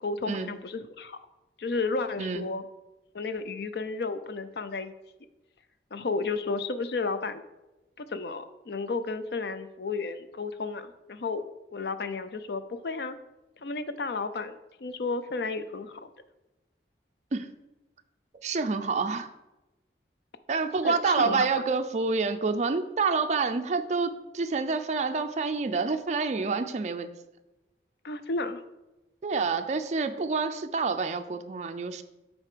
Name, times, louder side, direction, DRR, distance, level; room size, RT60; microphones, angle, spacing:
voice 1, 0.0-1.2 1.6-2.6 3.1-4.9 5.9-7.4 8.0-11.4 11.7-13.2 13.6-16.1 20.8-21.5 28.0-28.6, left 3 dB, 65° left, 11 dB, 0.5 m, -32 dB
voice 2, 18.4-19.3 20.5-27.1 29.2-32.0, right 4 dB, 40° right, 8 dB, 0.4 m, -28 dB
7.5 x 4.2 x 5.0 m, 1.0 s
head